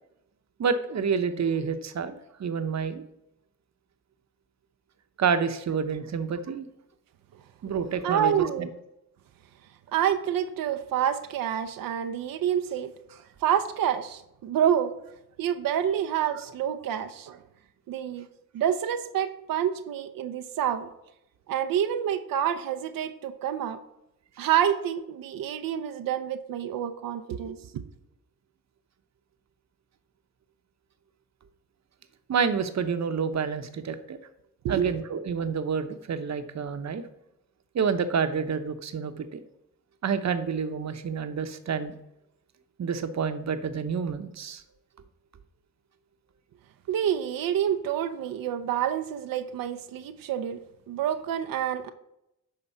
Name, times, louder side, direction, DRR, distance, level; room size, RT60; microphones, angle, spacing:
voice 1, 0.6-3.0 5.2-6.7 7.6-8.7 32.3-34.2 34.7-37.0 37.7-39.4 40.0-42.0 42.8-44.6, right 6 dB, 55° right, 9 dB, 1.0 m, -28 dB
voice 2, 8.0-8.7 9.9-14.9 15.4-17.4 17.9-18.3 18.5-20.9 21.5-23.8 24.4-27.6 34.6-34.9 46.9-50.6 50.9-51.9, right 9 dB, 85° right, 8 dB, 0.7 m, -28 dB
11.0 x 3.9 x 5.5 m, 0.83 s
cardioid pair, 70°, 33 cm